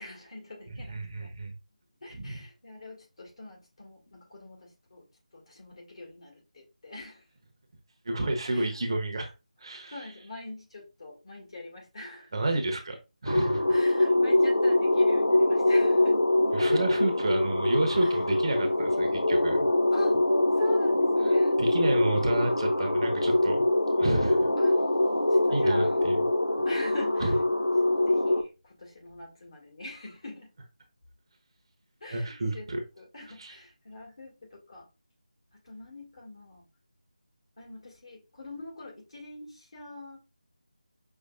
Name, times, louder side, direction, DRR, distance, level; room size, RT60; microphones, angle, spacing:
voice 1, 0.0-1.3 2.0-5.1 5.3-7.2 8.5-8.8 9.9-12.4 13.7-16.2 18.0-18.2 19.9-20.2 20.5-21.6 24.6-24.8 25.3-26.0 26.6-27.3 28.1-30.5 32.0-32.7 33.0-34.9 35.6-36.6 37.6-40.2, left 2 dB, 45° left, 2.0 m, -43 dB
voice 2, 0.9-1.5 2.1-2.4 8.0-9.3 9.6-9.9 12.3-13.0 13.2-13.6 16.5-19.6 21.6-23.6 24.0-24.5 25.5-26.2 27.2-27.3 32.1-32.8 33.4-33.6, right 2 dB, 35° right, 0.8 m, -30 dB
sound 1, 13.3-28.4, left 1 dB, 80° left, 0.8 m, -24 dB
5.5 x 3.2 x 2.4 m
figure-of-eight pair, 160°, 4 cm